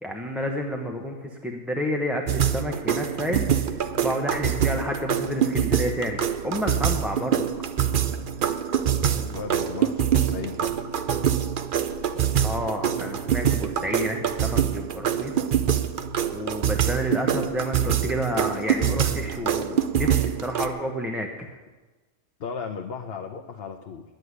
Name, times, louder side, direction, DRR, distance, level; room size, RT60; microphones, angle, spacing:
voice 1, 0.0-7.5 12.4-15.3 16.3-21.5, equal, ahead, 1 dB, 0.9 m, -30 dB
sound 1, 2.3-20.7, right 9 dB, 50° right, 0.7 m, -25 dB
voice 2, 9.2-10.8 22.4-24.0, left 5 dB, 55° left, 3 dB, 0.9 m, -35 dB
10.5 x 8.1 x 9.6 m, 1.2 s
omnidirectional pair, 1.3 m